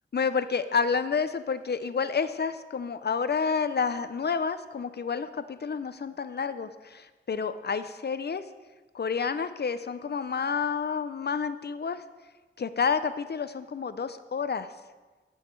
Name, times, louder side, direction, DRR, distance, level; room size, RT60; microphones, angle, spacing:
voice 1, 0.1-8.4 8.9-12.0 12.6-14.7, left 5 dB, 55° left, 12 dB, 0.5 m, -29 dB
16.5 x 6.4 x 4.5 m, 1.3 s
wide cardioid pair, 90°, 21 cm